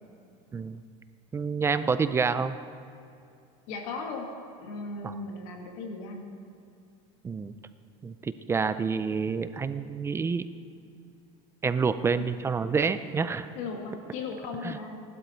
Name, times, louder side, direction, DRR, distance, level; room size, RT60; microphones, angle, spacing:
voice 1, 1.3-2.5 5.0-5.2 7.2-7.5 8.0-10.4 11.6-13.5 14.6-14.7, right 5 dB, 15° right, 12 dB, 0.4 m, -28 dB
voice 2, 3.7-4.3 4.6-6.3 12.1-12.3 13.5-15.0, left 4 dB, 75° left, 2 dB, 2.1 m, -37 dB
17.0 x 12.0 x 4.5 m, 2.5 s
cardioid pair, 145°, 17 cm